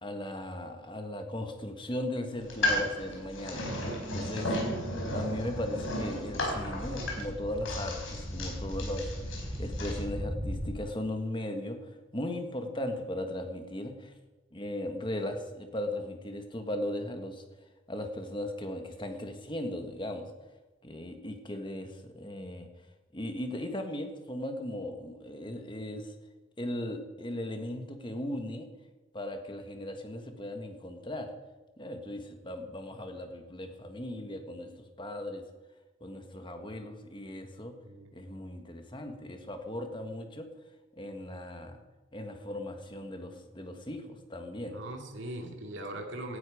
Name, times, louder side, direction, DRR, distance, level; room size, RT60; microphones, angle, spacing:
voice 1, 0.0-3.7 4.1-4.6 5.1-14.1 14.5-17.4 17.9-20.3 20.8-22.7 23.1-26.1 26.6-28.7 29.1-31.3 31.8-35.4 36.0-37.7 38.1-40.5 40.9-41.8 42.1-44.8, left 1 dB, 25° left, 5 dB, 1.7 m, -37 dB
sound 1, 2.4-10.0, left 1 dB, 70° left, 4.9 m, -34 dB
sound 2, 4.8-10.7, equal, 5° right, 3.9 m, -38 dB
voice 2, 44.7-46.4, right 1 dB, 60° right, 3 dB, 2.3 m, -40 dB
18.0 x 12.0 x 5.1 m, 1.2 s
head